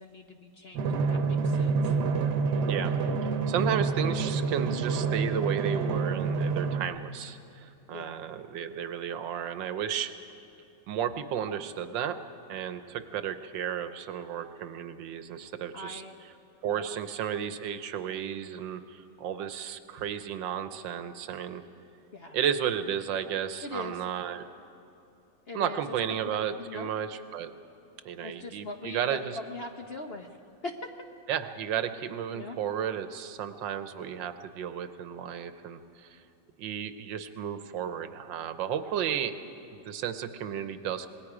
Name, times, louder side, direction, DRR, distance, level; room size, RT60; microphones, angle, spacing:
voice 1, 0.0-1.9 6.7-6.8 7.9-8.2 15.7-16.1 16.7-16.8 22.1-22.4 23.6-24.0 25.5-25.8 26.2-26.9 28.2-30.3 30.6-30.9 32.3-32.6, left 2 dB, 45° left, 3 dB, 0.9 m, -41 dB
Drum, 0.7-6.8, right 4 dB, 65° right, 1.5 m, -28 dB
voice 2, 3.2-10.1 10.9-12.2 12.5-16.0 16.6-21.6 22.3-24.4 25.5-27.5 28.0-29.4 31.3-36.2 36.6-39.4 39.7-41.1, right 9 dB, 80° right, 10 dB, 1.6 m, -33 dB
26.5 x 20.0 x 4.9 m, 2.9 s
omnidirectional pair, 2.0 m